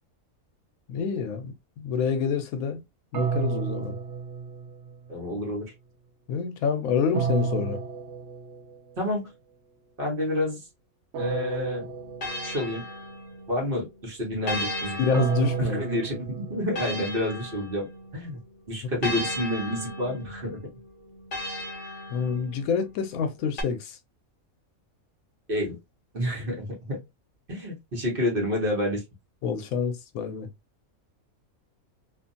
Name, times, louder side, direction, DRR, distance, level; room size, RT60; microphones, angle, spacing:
voice 1, 0.9-2.8 3.1-4.0 6.3-7.8 15.0-15.8 19.0-19.1 22.1-24.0 29.4-30.5, left 6 dB, 80° left, 1.0 m, -27 dB
sound 1, 3.1-5.2 7.1-9.0 11.1-13.0 15.1-17.3, right 6 dB, 65° right, 0.8 m, -32 dB
voice 2, 5.1-5.7 9.0-9.3 10.0-10.6 11.1-11.9 12.4-12.8 13.5-15.0 15.6-17.9 18.1-18.4 18.7-20.6 25.5-25.8 26.1-27.0 27.5-29.0, left 1 dB, 45° right, 1.2 m, -29 dB
sound 2, 11.2-13.7 14.5-18.2 19.0-22.8 23.6-23.7, left 1 dB, 45° left, 0.7 m, -36 dB
2.7 x 2.5 x 2.5 m
omnidirectional pair, 1.5 m